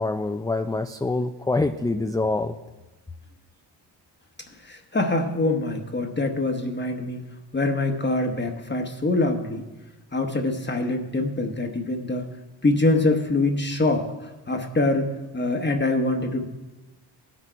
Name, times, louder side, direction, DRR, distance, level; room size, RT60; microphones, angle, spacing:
voice 1, 0.0-2.6, left 2 dB, 10° left, 6 dB, 0.4 m, -25 dB
voice 2, 4.6-7.2 7.5-9.7 10.1-12.3 12.6-16.5, left 2 dB, 25° left, 3 dB, 1.0 m, -24 dB
16.5 x 6.1 x 4.5 m, 1.1 s
cardioid pair, 85°, 45 cm